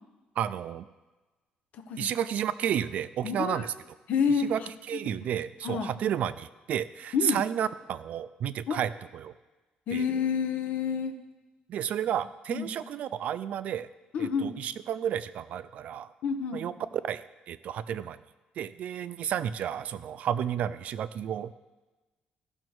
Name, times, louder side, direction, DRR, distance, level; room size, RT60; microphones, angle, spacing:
voice 1, 0.4-0.9 2.0-3.7 4.4-4.6 4.9-9.3 9.9-10.1 11.7-13.9 14.2-16.1 16.5-16.7 17.0-18.2 18.6-21.5, right 9 dB, 55° right, 14 dB, 0.4 m, -32 dB
voice 2, 1.7-2.1 3.2-3.7 4.1-4.7 5.6-5.9 7.1-7.4 8.7-8.8 9.9-11.2 12.5-12.7 14.1-14.5 16.2-16.6, left 6 dB, 60° left, 7 dB, 0.9 m, -29 dB
15.0 x 6.2 x 4.6 m, 1.2 s
cardioid pair, 175°, 3 cm